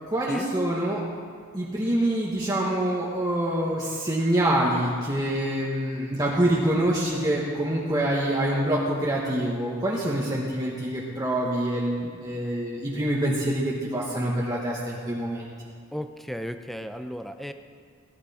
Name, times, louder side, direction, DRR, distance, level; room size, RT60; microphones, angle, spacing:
voice 1, 0.1-1.0 1.5-15.5, right 1 dB, 20° right, -5 dB, 1.3 m, -26 dB
voice 2, 15.9-17.5, equal, ahead, 8 dB, 0.5 m, -35 dB
18.0 x 11.0 x 4.3 m, 2.2 s
head